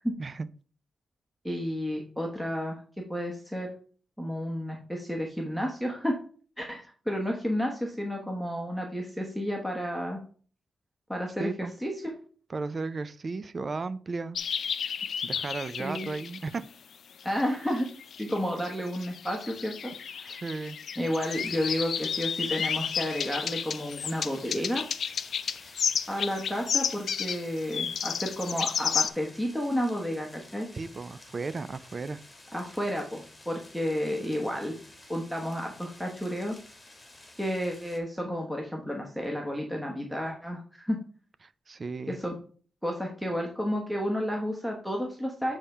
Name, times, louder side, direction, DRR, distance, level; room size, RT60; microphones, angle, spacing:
voice 1, 1.4-3.7 4.2-6.2 6.6-10.2 11.1-12.1 15.8-16.1 17.2-17.9 18.2-20.4 21.0-24.9 26.1-30.7 32.5-34.8 35.1-36.6 37.4-41.0 42.1-42.3 42.8-45.6, equal, 5° right, 0 dB, 0.9 m, -31 dB
voice 2, 11.4-11.7 12.5-14.4 15.2-16.6 20.3-20.8 30.7-32.2 41.7-42.2, right 3 dB, 30° right, 14 dB, 0.4 m, -34 dB
sound 1, 14.3-16.6 17.2-29.1, left 7 dB, 65° left, 0.4 m, -32 dB
sound 2, 21.2-38.0, left 2 dB, 15° left, 1.3 m, -52 dB
7.2 x 3.5 x 5.5 m, 0.43 s
wide cardioid pair, 160°, 0 cm